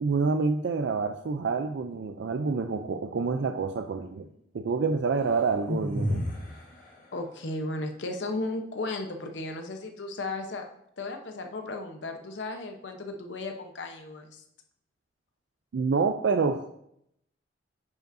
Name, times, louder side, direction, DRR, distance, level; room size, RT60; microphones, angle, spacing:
voice 1, 0.0-4.3 4.5-6.2 15.7-16.7, right 4 dB, 75° right, 6 dB, 0.4 m, -27 dB
sound 1, 5.7-6.5, equal, 50° left, 1.5 m, -29 dB
voice 2, 7.1-10.7 11.0-14.4, left 2 dB, 85° left, 5 dB, 0.8 m, -35 dB
9.4 x 5.1 x 2.6 m, 0.75 s
head